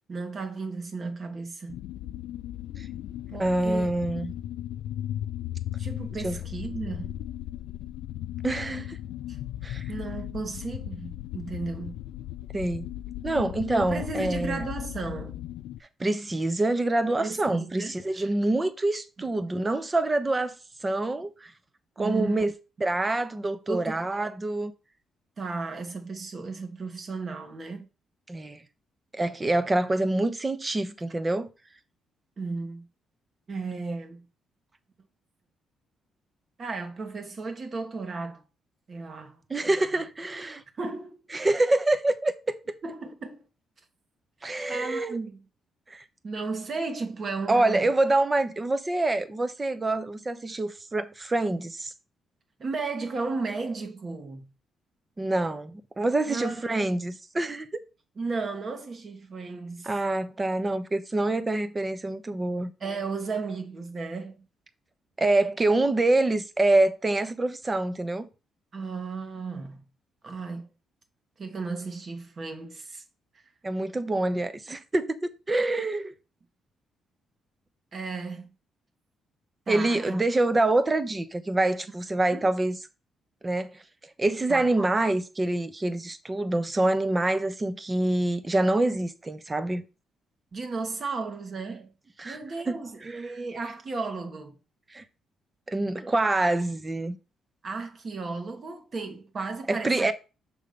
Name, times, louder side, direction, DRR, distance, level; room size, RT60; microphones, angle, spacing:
voice 1, 0.1-1.8 3.3-3.9 5.8-7.2 9.3-9.4 9.9-12.0 13.7-15.4 17.2-18.3 19.2-19.3 22.0-22.5 23.7-24.0 25.4-27.9 32.4-32.9 33.5-34.3 36.6-38.4 38.9-40.0 40.8-41.5 42.8-43.5 44.7-45.4 46.2-47.9 52.6-54.5 56.3-56.6 58.2-59.9 62.8-64.5 68.7-69.8 70.2-70.7 71.4-73.0 73.3-73.4 77.9-78.5 79.7-80.2 82.3-82.4 84.5-84.7 90.5-91.9 92.2-94.6 97.6-100.1, right 4 dB, 45° right, 1.7 m, -34 dB
sound 1, 1.7-15.8, left 12 dB, 90° left, 0.4 m, -36 dB
voice 2, 3.4-4.3 6.2-6.4 8.4-9.0 9.6-9.9 12.5-12.9 13.2-14.6 16.0-20.5 20.8-21.5 22.0-22.5 22.8-24.7 28.3-28.6 29.1-31.5 39.5-40.6 41.3-42.6 44.4-45.2 45.9-46.0 47.5-51.9 55.2-57.8 59.8-62.7 65.2-68.3 73.6-76.1 79.7-82.8 83.4-83.8 84.2-89.8 92.2-92.4 92.7-92.8 93.1-93.2 94.9-95.0 95.7-97.2 99.7-100.1, right 2 dB, 20° right, 0.9 m, -26 dB
6.6 x 3.6 x 5.2 m
cardioid pair, 90°, 0 cm